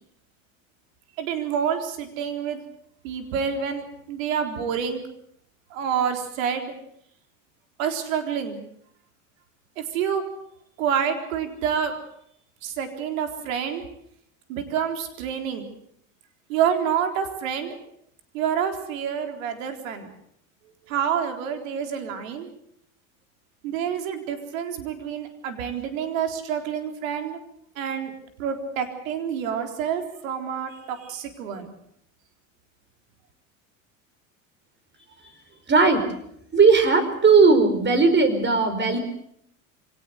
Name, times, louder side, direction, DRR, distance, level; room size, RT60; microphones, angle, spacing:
voice 1, 1.2-2.6 3.0-5.0 5.7-6.7 7.8-8.6 9.8-10.2 10.8-11.9 12.6-13.8 14.5-15.7 16.5-17.8 18.3-20.1 20.9-22.5 23.6-27.4 27.8-28.1 28.4-31.7, right 8 dB, 80° right, 5 dB, 4.1 m, -28 dB
voice 2, 35.7-36.0 36.5-39.0, right 4 dB, 25° right, 10 dB, 5.1 m, -17 dB
23.5 x 18.5 x 8.0 m, 0.72 s
hypercardioid pair, 95°, 40 cm